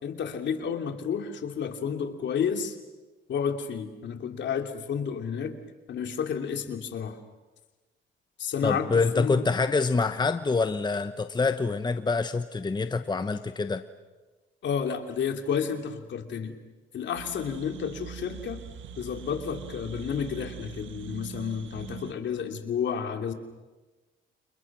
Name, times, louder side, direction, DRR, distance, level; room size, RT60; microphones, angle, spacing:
voice 1, 0.0-2.8 3.3-5.5 5.9-7.2 8.4-9.4 14.6-16.5 16.9-18.6 19.0-23.3, left 7 dB, 65° left, 5 dB, 3.0 m, -31 dB
voice 2, 8.6-13.8, left 4 dB, 20° left, 10 dB, 1.1 m, -26 dB
sound 1, 17.1-22.1, right 9 dB, 75° right, 1.8 m, -42 dB
30.0 x 28.5 x 6.2 m, 1.2 s
cardioid pair, 90°, 20 cm